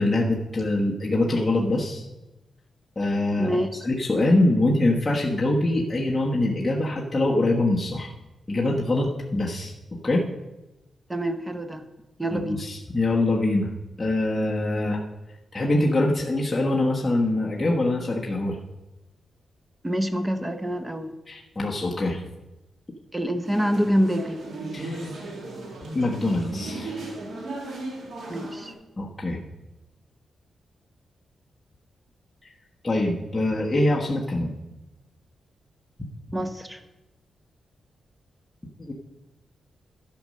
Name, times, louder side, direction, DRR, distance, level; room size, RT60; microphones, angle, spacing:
voice 1, 0.0-2.0 3.0-3.6 3.8-8.1 8.5-9.7 10.0-10.2 12.3-13.7 14.0-15.0 15.5-18.6 21.3-22.2 24.7-25.0 25.9-26.9 29.0-29.4 32.4-32.5 32.8-34.5 38.8-38.9, left 2 dB, 20° left, -3 dB, 1.2 m, -24 dB
voice 2, 3.4-3.8 11.1-11.8 12.2-12.6 19.8-21.1 23.1-24.4 28.3-28.7 36.3-36.8, equal, 15° right, 9 dB, 0.8 m, -26 dB
sound 1, 23.4-28.7, right 2 dB, 80° right, 2.2 m, -36 dB
11.5 x 5.2 x 6.5 m, 1.0 s
cardioid pair, 110°, 0 cm